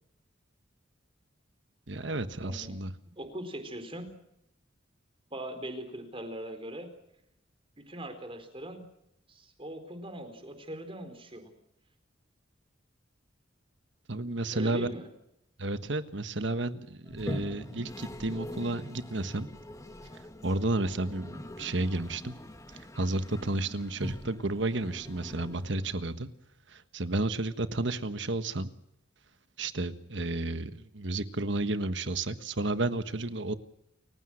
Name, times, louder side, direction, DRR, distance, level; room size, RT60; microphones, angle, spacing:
voice 1, 1.9-2.9 14.1-14.9 15.6-19.5 20.4-22.3 22.7-26.3 26.7-28.7 29.6-33.5, right 2 dB, 70° right, 10 dB, 1.4 m, -32 dB
voice 2, 2.4-2.8 3.2-4.1 5.3-6.9 7.8-8.8 9.3-11.5 14.5-15.1, right 1 dB, 30° right, 7 dB, 4.3 m, -40 dB
Toilet flush, 17.1-26.2, left 1 dB, 15° left, 1.5 m, -43 dB
29.0 x 16.0 x 6.5 m, 0.81 s
head